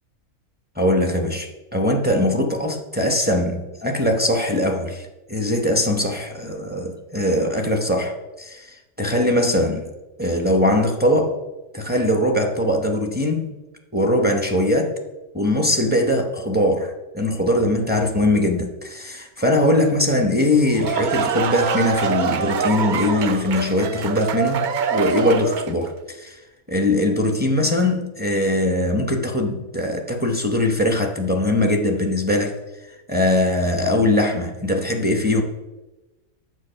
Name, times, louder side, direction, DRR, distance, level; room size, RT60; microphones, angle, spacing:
voice 1, 0.8-9.9 10.2-11.4 11.7-13.6 13.9-15.0 15.3-26.3 26.7-32.6 33.1-35.4, left 1 dB, 10° right, 0.7 m, -21 dB
sound 1, 20.5-25.9, right 6 dB, 70° right, 0.4 m, -24 dB
9.2 x 7.4 x 5.7 m
omnidirectional pair, 1.5 m